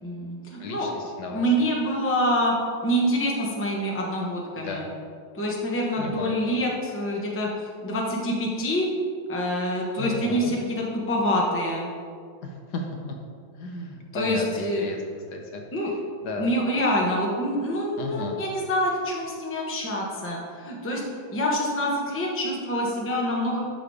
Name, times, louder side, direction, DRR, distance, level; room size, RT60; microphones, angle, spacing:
voice 1, 0.0-0.9 1.3-2.5 2.8-4.8 5.3-7.5 7.8-8.9 9.3-11.9 14.1-14.8 15.7-15.9 16.4-21.0 21.3-23.6, equal, 10° left, -2 dB, 0.8 m, -26 dB
voice 2, 0.6-1.6 4.6-4.9 6.0-6.4 10.0-10.5 12.4-12.9 13.6-15.0 15.3-15.6 16.2-16.5 18.0-18.4, left 2 dB, 65° left, 2 dB, 1.3 m, -34 dB
11.0 x 3.9 x 4.8 m, 2.2 s
omnidirectional pair, 2.0 m